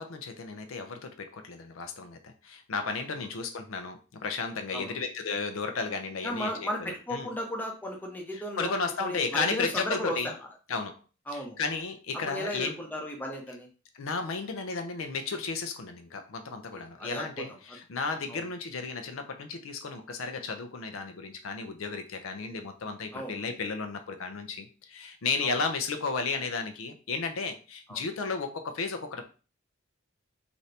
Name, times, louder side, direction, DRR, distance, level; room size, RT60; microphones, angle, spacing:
voice 1, 0.0-7.3 8.3-10.3 10.7-11.0 11.3-12.7 13.9-29.2, left 4 dB, 75° left, 7 dB, 0.5 m, -34 dB
voice 2, 6.2-8.7 9.0-10.3 11.3-11.6 12.3-13.7 16.7-17.5 18.3-18.4 23.1-23.4 25.4-25.5 27.9-28.0, equal, 10° left, 1 dB, 0.6 m, -35 dB
2.7 x 2.6 x 3.2 m, 0.34 s
head